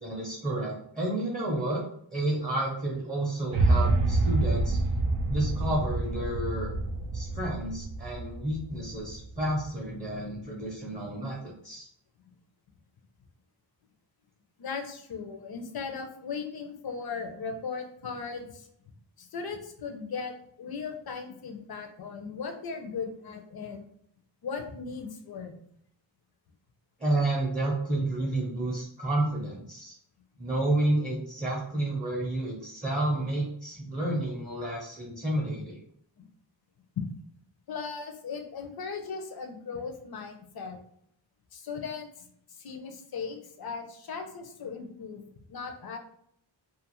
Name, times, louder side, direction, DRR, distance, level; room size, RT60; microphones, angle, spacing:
voice 1, 0.0-1.8 2.1-4.8 5.3-6.7 7.1-11.9 27.0-29.9 30.4-35.8, right 1 dB, 15° right, -3 dB, 0.6 m, -30 dB
sound 1, 3.5-9.7, right 2 dB, 75° right, 0.6 m, -27 dB
voice 2, 14.6-18.7 19.2-23.8 24.4-25.5 37.7-40.8 41.5-42.3 42.6-46.0, left 5 dB, 50° left, 5 dB, 0.5 m, -38 dB
2.4 x 2.4 x 2.9 m, 0.67 s
wide cardioid pair, 135°, 48 cm